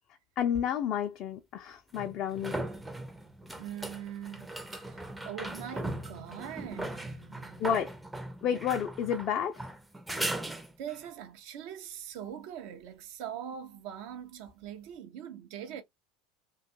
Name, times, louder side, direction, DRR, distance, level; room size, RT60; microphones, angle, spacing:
voice 1, 0.4-2.6 7.6-7.9 8.4-9.7, left 8 dB, 50° left, 0.4 m, -31 dB
sound 1, 0.5-0.6 1.9-11.1 14.5-14.6, right 1 dB, 10° right, 0.5 m, -39 dB
voice 2, 3.6-7.7 10.8-15.8, right 9 dB, 65° right, 0.6 m, -42 dB
2.4 x 2.3 x 2.5 m
hypercardioid pair, 80°, 0 cm